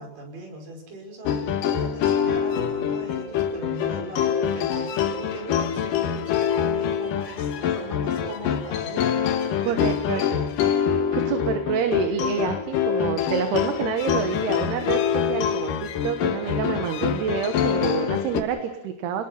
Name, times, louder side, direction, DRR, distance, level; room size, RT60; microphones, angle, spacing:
voice 1, 0.0-9.3 9.7-10.5, right 1 dB, 50° right, 2 dB, 6.9 m, -39 dB
sound 1, 1.2-18.4, left 8 dB, 65° left, 2.5 m, -25 dB
voice 2, 9.6-10.2 11.1-19.3, right 7 dB, 70° right, 7 dB, 3.3 m, -28 dB
29.5 x 20.0 x 5.8 m, 0.91 s
omnidirectional pair, 5.0 m